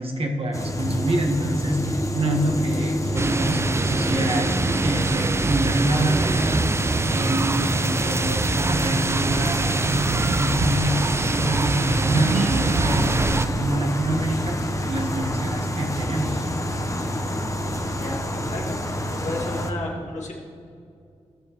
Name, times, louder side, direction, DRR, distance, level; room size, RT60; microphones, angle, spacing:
voice 1, 0.0-6.8 7.1-16.4, right 1 dB, 50° right, 2 dB, 1.5 m, -26 dB
sound 1, 0.5-19.7, equal, 25° left, 1.0 m, -28 dB
sound 2, 3.2-13.5, right 3 dB, 20° right, 0.4 m, -25 dB
Accelerating revving vroom, 8.0-15.3, right 3 dB, 90° right, 0.7 m, -31 dB
voice 2, 17.9-18.8 19.1-20.3, left 2 dB, 75° left, -3 dB, 2.1 m, -32 dB
17.5 x 6.5 x 3.1 m, 2.5 s
cardioid pair, 50°, 12 cm